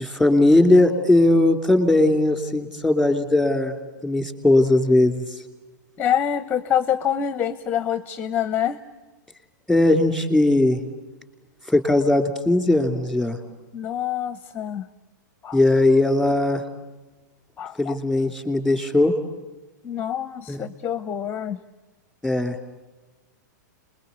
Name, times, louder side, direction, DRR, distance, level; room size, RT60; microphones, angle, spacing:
voice 1, 0.0-3.7 4.0-5.2 9.7-10.8 11.7-13.4 15.5-16.6 17.8-19.1 20.5-20.6 22.2-22.6, left 2 dB, ahead, 8 dB, 2.8 m, -19 dB
voice 2, 6.0-8.8 13.7-14.8 15.4-15.6 17.6-18.0 19.8-21.6, left 9 dB, 15° left, 13 dB, 0.9 m, -26 dB
27.5 x 21.5 x 8.3 m, 1.2 s
hypercardioid pair, 140°, 10 cm